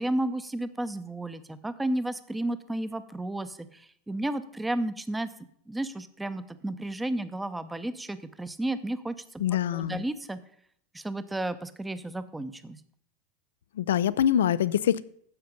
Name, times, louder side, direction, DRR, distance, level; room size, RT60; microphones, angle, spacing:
voice 1, 0.0-5.3 5.7-9.4 9.7-10.4 10.9-12.8, right 1 dB, 5° right, 12 dB, 0.7 m, -32 dB
voice 2, 9.4-10.0 13.8-15.0, left 10 dB, 90° left, 18 dB, 0.4 m, -24 dB
10.5 x 6.9 x 5.2 m, 0.65 s
supercardioid pair, 130°, 0 cm